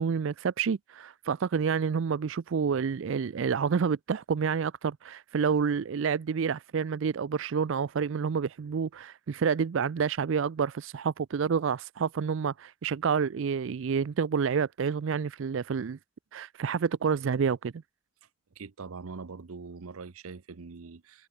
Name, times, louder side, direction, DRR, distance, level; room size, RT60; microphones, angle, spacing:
voice 1, 0.0-16.0 16.3-17.7, right 6 dB, 65° right, 0.4 m, -28 dB
voice 2, 18.6-21.3, right 4 dB, 85° right, 0.7 m, -43 dB
head